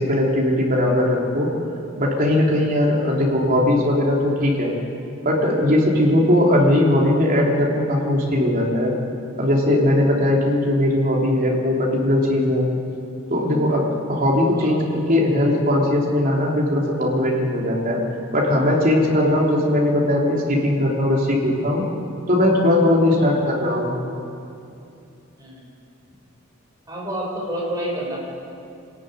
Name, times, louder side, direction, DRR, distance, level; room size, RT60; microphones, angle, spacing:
voice 1, 0.0-1.5 2.0-4.8 5.2-8.9 9.4-12.7 13.3-13.8 14.1-18.0 18.3-21.8 22.3-23.9, left 1 dB, 40° right, -2 dB, 3.7 m, -19 dB
voice 2, 25.4-25.7 26.9-28.2, right 1 dB, 15° right, -5 dB, 6.5 m, -29 dB
26.0 x 14.0 x 9.5 m, 2.7 s
head